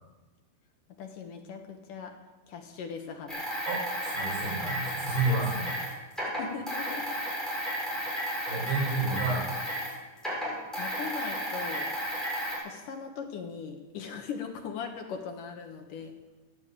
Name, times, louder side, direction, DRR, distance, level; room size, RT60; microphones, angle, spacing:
voice 1, 1.0-2.1 2.5-3.5 6.2-7.2 8.4-8.7 10.8-11.9 12.6-16.1, left 6 dB, 65° left, 3 dB, 2.5 m, -40 dB
sound 1, 3.3-9.9 10.2-12.6, equal, ahead, 6.3 m, -33 dB
voice 2, 3.7-5.7 8.5-9.5, right 3 dB, 70° right, -3 dB, 6.8 m, -30 dB
15.0 x 9.5 x 8.3 m, 1.2 s
omnidirectional pair, 4.6 m